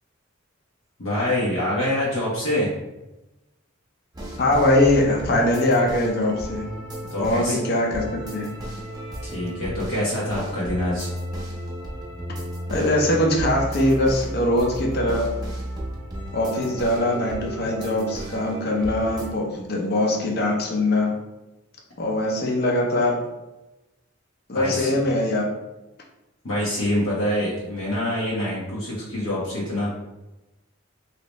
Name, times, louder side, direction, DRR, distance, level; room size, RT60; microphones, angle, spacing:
voice 1, 1.0-2.7 7.1-7.6 9.2-11.1 24.5-24.9 26.4-29.9, left 1 dB, 80° left, -7 dB, 1.0 m, -25 dB
sound 1, 4.1-19.3, right 1 dB, 20° right, 0.6 m, -33 dB
voice 2, 4.4-6.6 7.2-8.5 12.7-15.3 16.3-21.1 22.0-23.2 24.5-25.5, left 1 dB, 50° left, 0 dB, 0.6 m, -22 dB
3.2 x 2.8 x 3.0 m, 1.0 s
head